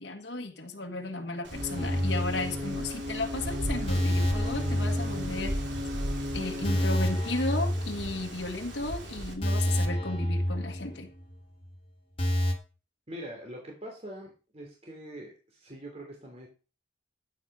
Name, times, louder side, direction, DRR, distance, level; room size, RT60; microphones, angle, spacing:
voice 1, 0.0-5.5 6.3-11.1, left 2 dB, 75° left, 2 dB, 1.6 m, -34 dB
Wind, 1.4-9.3, right 1 dB, 90° right, 2.9 m, -38 dB
sound 1, 1.5-7.0, left 1 dB, 65° right, 2.8 m, -36 dB
sound 2, 1.8-3.0 3.3-3.4 3.9-5.8 6.1-6.2 6.6-8.6 8.9-9.0 9.4-11.3 11.6-11.7 12.2-12.5, equal, 30° left, 2.2 m, -29 dB
voice 2, 13.1-16.5, right 1 dB, 35° right, 0 dB, 3.2 m, -43 dB
13.5 x 8.3 x 4.9 m, 0.34 s
head